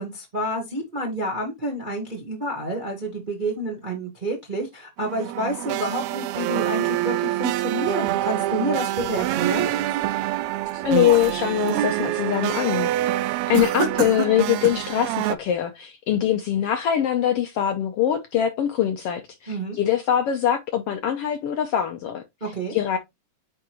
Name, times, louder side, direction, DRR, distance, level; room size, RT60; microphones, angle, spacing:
voice 1, 0.0-9.7 19.5-19.8 22.4-22.7, right 1 dB, 35° right, 0.8 m, -29 dB
sound 1, 5.0-15.4, right 15 dB, 80° right, 1.7 m, -26 dB
sound 2, 9.0-10.1 10.6-11.9 12.3-12.7 13.5-14.9, right 7 dB, 65° right, 1.4 m, -30 dB
voice 2, 10.7-13.2 13.5-23.0, left 10 dB, 70° left, 1.4 m, -23 dB
9.0 x 3.8 x 3.0 m
omnidirectional pair, 3.4 m